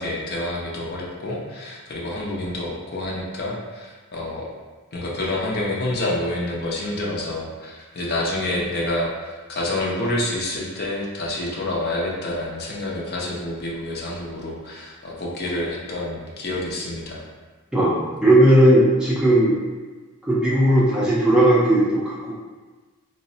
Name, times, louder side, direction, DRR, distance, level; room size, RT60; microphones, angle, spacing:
voice 1, 0.0-4.5 4.9-17.2, left 1 dB, 45° left, -3 dB, 0.5 m, -28 dB
voice 2, 17.7-19.6 20.2-22.3, right 1 dB, 5° right, -7 dB, 0.4 m, -17 dB
3.8 x 2.0 x 2.7 m, 1.3 s
head